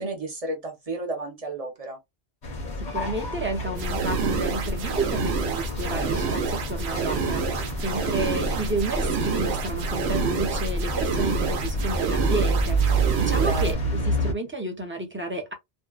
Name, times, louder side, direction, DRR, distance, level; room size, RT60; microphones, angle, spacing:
voice 1, 0.0-2.0 13.4-13.7, right 2 dB, 40° right, 0.9 m, -32 dB
sound 1, 2.4-14.3, right 2 dB, 50° left, 0.9 m, -29 dB
voice 2, 2.8-15.5, right 2 dB, 15° right, 0.6 m, -31 dB
sound 2, 3.7-13.7, right 4 dB, 85° right, 0.9 m, -28 dB
2.6 x 2.1 x 2.3 m
omnidirectional pair, 1.1 m